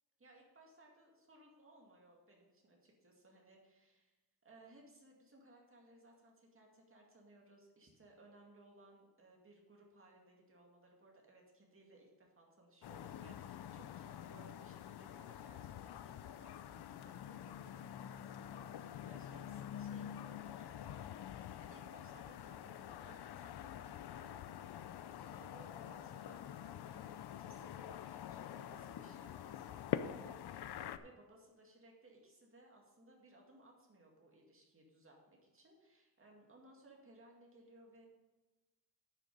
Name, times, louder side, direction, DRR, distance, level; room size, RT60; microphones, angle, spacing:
voice 1, 0.2-4.2 4.4-38.1, right 2 dB, 35° right, -1 dB, 2.2 m, -62 dB
sound 1, 12.8-31.0, left 10 dB, 85° left, 0.6 m, -46 dB
10.5 x 6.5 x 5.4 m, 1.1 s
wide cardioid pair, 165°, 38 cm